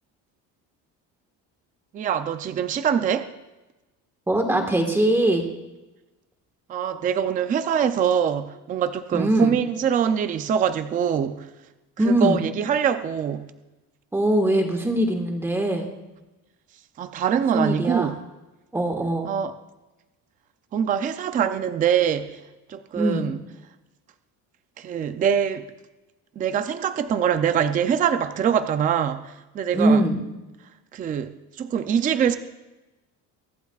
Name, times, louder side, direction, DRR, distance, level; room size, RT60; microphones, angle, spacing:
voice 1, 1.9-3.3 6.7-11.5 12.0-13.5 17.0-18.2 19.3-19.5 20.7-22.4 22.7-23.4 24.8-25.7 26.4-30.0 30.9-32.4, right 8 dB, 25° right, 0.4 m, -24 dB
voice 2, 4.3-5.4 9.1-9.5 12.0-12.4 14.1-15.9 17.5-18.1 18.7-19.3 23.0-23.3 29.7-30.2, right 1 dB, 5° right, 1.5 m, -21 dB
23.5 x 11.5 x 2.4 m
cardioid pair, 175°, 35 cm